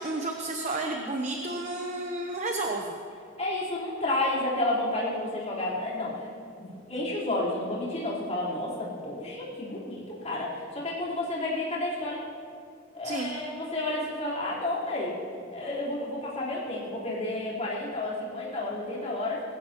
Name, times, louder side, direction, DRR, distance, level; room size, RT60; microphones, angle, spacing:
voice 1, 0.0-2.8 13.0-13.3, right 2 dB, 35° right, 2 dB, 0.9 m, -31 dB
voice 2, 3.4-6.3 6.5-12.2 12.9-15.2 15.5-19.4, left 2 dB, 35° left, -8 dB, 4.1 m, -31 dB
21.0 x 15.5 x 3.1 m, 2.4 s
head